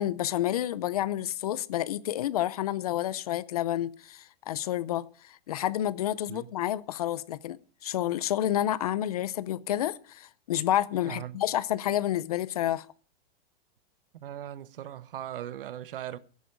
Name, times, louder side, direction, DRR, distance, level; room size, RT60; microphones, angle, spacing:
voice 1, 0.0-7.6 7.8-12.9, left 12 dB, 40° left, 0.6 m, -29 dB
voice 2, 11.1-11.4 14.1-16.2, right 11 dB, 65° right, 1.1 m, -39 dB
16.5 x 10.5 x 5.1 m
supercardioid pair, 180°, 31 cm